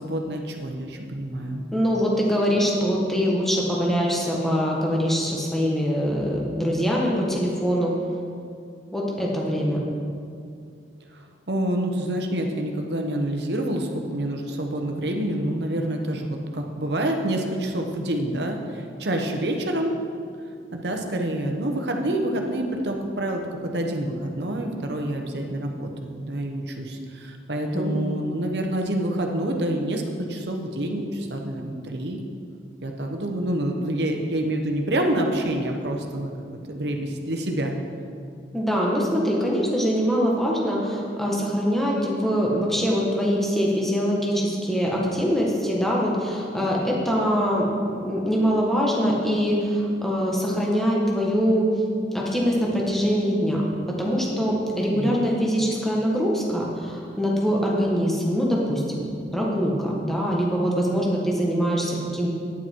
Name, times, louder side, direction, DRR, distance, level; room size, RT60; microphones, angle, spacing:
voice 1, 0.0-1.6 11.1-11.2 11.5-19.9 20.7-30.0 30.3-32.2 32.8-36.3 36.7-37.8 54.9-55.2, right 1 dB, 70° right, 3 dB, 1.1 m, -27 dB
voice 2, 1.7-7.9 8.9-9.8 27.7-27.9 38.5-51.7 52.1-53.6 53.9-62.3, equal, ahead, -4 dB, 1.5 m, -23 dB
9.9 x 8.9 x 4.6 m, 2.4 s
head